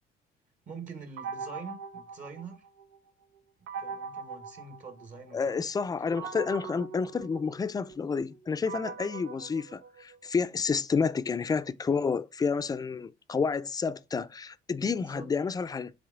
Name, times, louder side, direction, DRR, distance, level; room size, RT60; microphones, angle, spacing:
voice 1, 0.7-2.7 3.8-5.6 14.9-15.3, right 5 dB, 45° right, 1.5 m, -45 dB
sound 1, 1.2-3.0 3.7-5.5 6.2-10.4, right 5 dB, 90° right, 0.9 m, -41 dB
voice 2, 5.3-15.9, left 5 dB, 20° left, 0.5 m, -30 dB
7.8 x 3.5 x 3.6 m
cardioid pair, 110°, 17 cm